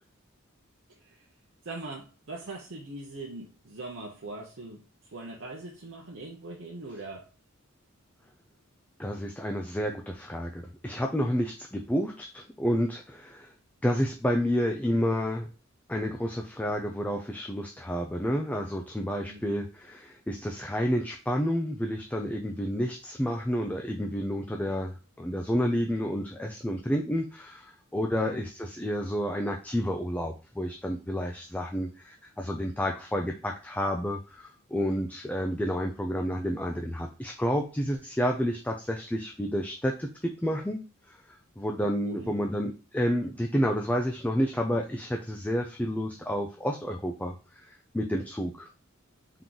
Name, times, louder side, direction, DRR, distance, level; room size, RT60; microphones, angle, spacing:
voice 1, 1.6-4.8 5.1-7.3 19.3-19.6 28.2-28.4 42.0-42.3, right 2 dB, 60° right, -2 dB, 0.7 m, -41 dB
voice 2, 9.0-13.5 13.8-15.5 15.9-40.8 41.1-48.7, equal, 5° left, 2 dB, 0.4 m, -30 dB
3.7 x 3.0 x 3.8 m, 0.32 s
head